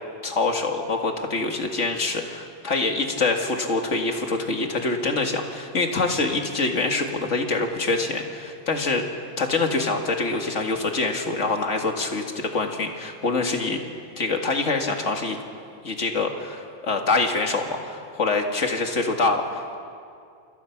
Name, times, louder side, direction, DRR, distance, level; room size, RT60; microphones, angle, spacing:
voice 1, 0.2-9.0 9.4-13.8 14.2-15.4 15.8-19.7, left 3 dB, 70° left, 3 dB, 2.4 m, -25 dB
28.5 x 26.0 x 6.0 m, 2.3 s
omnidirectional pair, 1.3 m